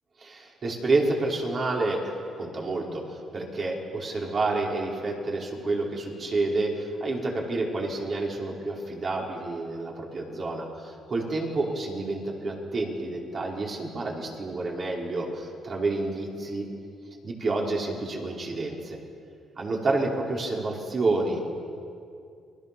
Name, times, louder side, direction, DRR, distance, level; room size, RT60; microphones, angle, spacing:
voice 1, 0.2-16.7 17.2-19.0 19.6-21.4, right 2 dB, 45° right, -1 dB, 5.4 m, -29 dB
29.5 x 22.0 x 7.3 m, 2.4 s
cardioid pair, 90°, 0 cm